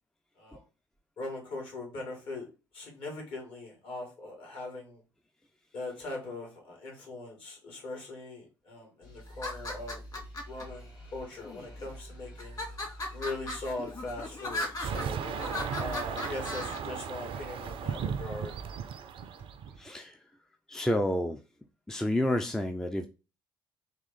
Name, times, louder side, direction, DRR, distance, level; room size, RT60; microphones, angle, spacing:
voice 1, 1.2-2.5 2.7-5.0 5.7-10.2 10.5-12.6 13.1-15.2 15.7-18.5, left 2 dB, 55° left, 0 dB, 2.3 m, -40 dB
sound 1, 9.0-15.5, equal, 70° left, 1.7 m, -48 dB
sound 2, 9.3-10.6 11.4-11.9 12.4-16.8, left 2 dB, 35° left, 2.1 m, -37 dB
sound 3, 14.8-19.9, right 7 dB, 50° right, 0.5 m, -36 dB
voice 2, 19.8-20.2 20.7-21.4 21.9-23.1, left 1 dB, 5° left, 7 dB, 0.5 m, -29 dB
3.7 x 3.0 x 4.0 m, 0.31 s
figure-of-eight pair, 50°, 12 cm